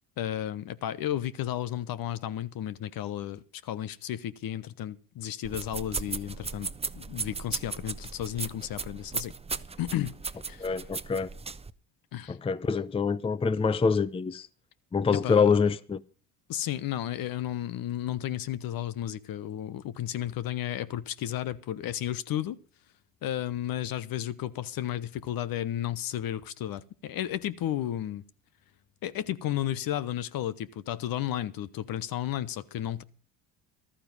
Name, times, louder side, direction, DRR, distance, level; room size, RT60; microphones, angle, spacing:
voice 1, 0.2-6.7 6.9-9.3 9.8-10.2 10.5-10.8 12.1-12.4 15.2-15.6 16.5-22.6 23.2-28.2 29.0-33.0, left 12 dB, 60° left, 1.1 m, -33 dB
sound 1, 5.4-11.7, right 4 dB, 15° right, 0.8 m, -37 dB
voice 2, 10.6-11.3 12.3-14.5 14.9-16.0, left 5 dB, 15° left, 0.6 m, -25 dB
14.5 x 13.0 x 5.4 m
supercardioid pair, 80°, 40 cm